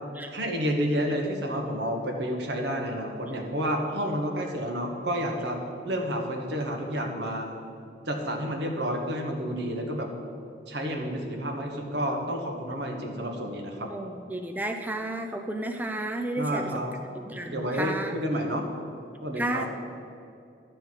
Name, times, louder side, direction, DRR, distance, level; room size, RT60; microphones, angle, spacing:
voice 1, 0.3-5.6 5.8-7.6 8.1-10.1 10.7-13.9 16.4-17.0 17.5-18.6 19.2-19.7, equal, 70° right, 2 dB, 1.4 m, -30 dB
voice 2, 13.9-16.8 17.3-18.4 19.4-19.7, right 1 dB, 10° right, 4 dB, 0.5 m, -32 dB
11.5 x 4.5 x 7.9 m, 2.5 s
head